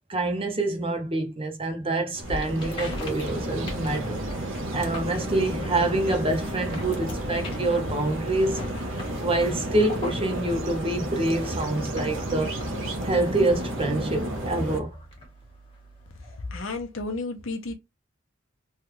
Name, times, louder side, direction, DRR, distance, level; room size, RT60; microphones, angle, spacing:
voice 1, 0.1-4.2 4.7-8.7 9.2-12.5 13.0-14.9, right 2 dB, 25° right, 0.8 m, -26 dB
sound 1, 2.1-14.8, right 1 dB, 65° right, 0.8 m, -32 dB
sound 2, 2.2-16.8, equal, 25° left, 1.3 m, -42 dB
voice 2, 16.5-17.7, left 3 dB, 70° left, 0.8 m, -32 dB
3.2 x 2.3 x 3.1 m
head